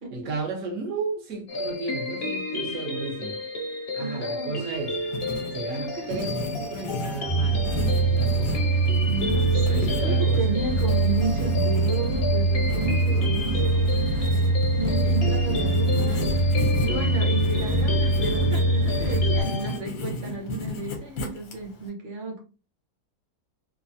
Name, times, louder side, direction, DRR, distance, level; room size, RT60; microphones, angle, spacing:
voice 1, 0.1-3.4 3.9-5.0 5.5-7.7 8.0-8.7 9.7-10.5, right 3 dB, 65° right, 1.2 m, -33 dB
sound 1, 1.5-19.8, left 2 dB, 50° left, 0.8 m, -32 dB
voice 2, 4.0-4.6 5.7-6.1 9.1-22.4, right 3 dB, 40° right, 0.8 m, -33 dB
Writing, 4.7-21.9, left 2 dB, 75° left, 1.2 m, -35 dB
sound 2, 7.3-19.4, right 2 dB, 80° right, 1.2 m, -23 dB
3.2 x 2.0 x 2.6 m
omnidirectional pair, 1.7 m